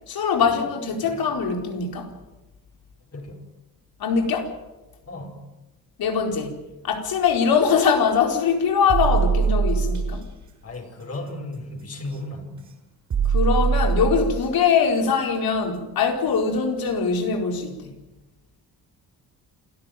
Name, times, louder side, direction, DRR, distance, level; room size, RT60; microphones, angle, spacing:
voice 1, 0.1-2.1 4.0-4.5 6.0-6.6 6.8-10.2 13.2-17.9, left 6 dB, 75° left, 4.6 m, -22 dB
voice 2, 3.1-3.5 5.1-5.5 10.6-12.7, left 1 dB, 40° left, 5.6 m, -35 dB
sound 1, 8.9-10.2 12.0-12.2 13.1-14.4 16.3-16.4 16.9-17.0, right 6 dB, 55° right, 6.7 m, -22 dB
27.5 x 14.0 x 9.3 m
cardioid pair, 105°, 37 cm